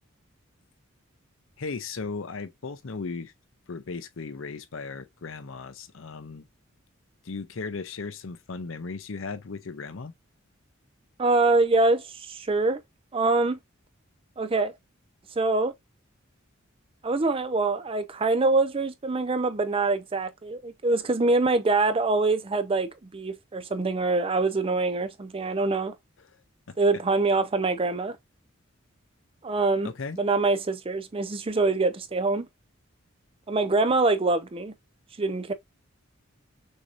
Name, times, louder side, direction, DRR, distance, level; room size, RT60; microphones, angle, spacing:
voice 1, 1.6-3.3 3.7-6.4 7.2-10.1 26.7-26.8 29.8-30.2, left 4 dB, 65° left, 0.7 m, -36 dB
voice 2, 11.2-12.8 13.1-13.6 14.4-14.7 15.4-15.7 17.0-25.9 26.8-28.2 29.4-32.5 33.5-34.7 35.2-35.5, right 3 dB, 25° right, 0.5 m, -24 dB
6.4 x 2.8 x 2.4 m
head